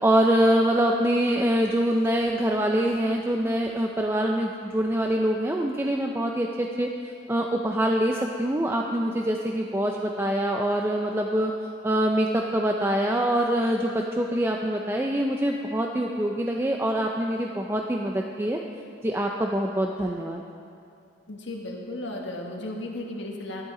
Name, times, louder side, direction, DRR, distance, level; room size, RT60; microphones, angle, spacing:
voice 1, 0.0-6.9 7.3-11.5 11.8-18.6 19.0-20.4, right 1 dB, 10° right, 1 dB, 0.4 m, -24 dB
voice 2, 21.3-23.6, left 1 dB, 65° left, 0 dB, 1.3 m, -35 dB
13.5 x 11.0 x 3.8 m, 2.5 s
head